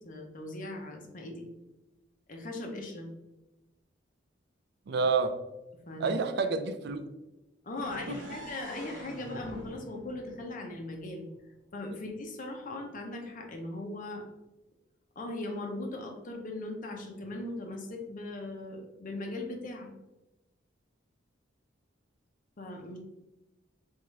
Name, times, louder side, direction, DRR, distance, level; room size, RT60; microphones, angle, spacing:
voice 1, 0.0-1.5 2.3-3.1 5.9-6.1 7.6-11.2 11.7-14.2 15.2-19.9 22.6-23.0, left 2 dB, 45° left, 2 dB, 0.7 m, -39 dB
voice 2, 4.9-5.3 6.0-7.0 8.1-8.4 11.9-12.0, right 4 dB, 60° right, 8 dB, 0.4 m, -29 dB
sound 1, 7.8-11.6, equal, 90° right, 1.1 m, -47 dB
3.7 x 3.5 x 3.2 m, 1.0 s
head